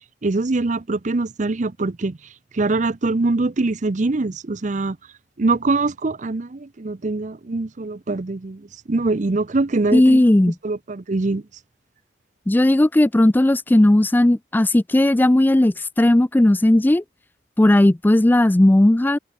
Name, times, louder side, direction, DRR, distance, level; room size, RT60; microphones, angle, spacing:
voice 1, 0.2-2.2 2.5-5.0 5.4-10.3 10.6-11.4, right 3 dB, 45° right, 0.6 m, -23 dB
voice 2, 9.9-10.5 12.5-17.0 17.6-19.2, left 1 dB, 10° left, 0.3 m, -16 dB
head